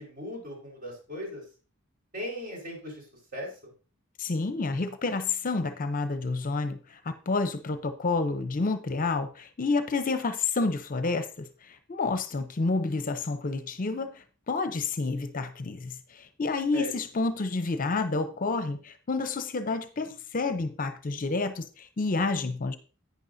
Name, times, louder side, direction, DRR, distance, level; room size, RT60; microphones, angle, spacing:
voice 1, 0.0-1.4 2.1-3.0 3.3-3.7 16.7-16.9, equal, 45° right, -2 dB, 4.7 m, -38 dB
voice 2, 4.2-22.8, left 3 dB, 40° left, 10 dB, 0.7 m, -29 dB
10.5 x 9.3 x 2.7 m, 0.36 s
head